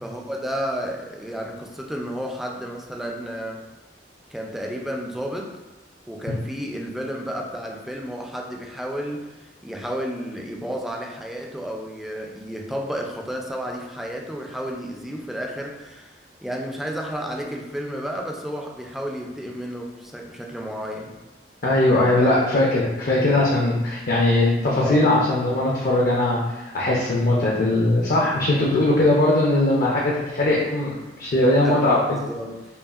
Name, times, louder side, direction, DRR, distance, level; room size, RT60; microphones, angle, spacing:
voice 1, 0.0-3.6 4.3-5.5 6.1-21.1 24.8-25.2 27.3-27.5 28.5-28.7 31.6-32.6, equal, ahead, 0 dB, 0.4 m, -32 dB
voice 2, 21.6-30.9 31.2-32.0, left 1 dB, 50° left, -3 dB, 0.5 m, -20 dB
5.2 x 2.4 x 2.4 m, 1.1 s
head